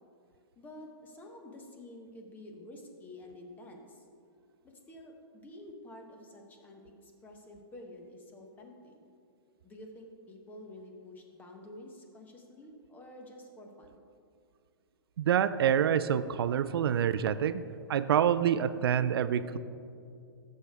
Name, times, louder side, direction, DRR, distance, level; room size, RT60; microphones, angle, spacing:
voice 1, 0.6-4.0 4.6-9.1 9.6-14.0, left 1 dB, 15° left, 2 dB, 1.0 m, -49 dB
voice 2, 15.2-17.6 17.9-19.6, right 9 dB, 80° right, 13 dB, 0.4 m, -27 dB
13.5 x 6.5 x 3.4 m, 2.5 s
hypercardioid pair, 150°, 12 cm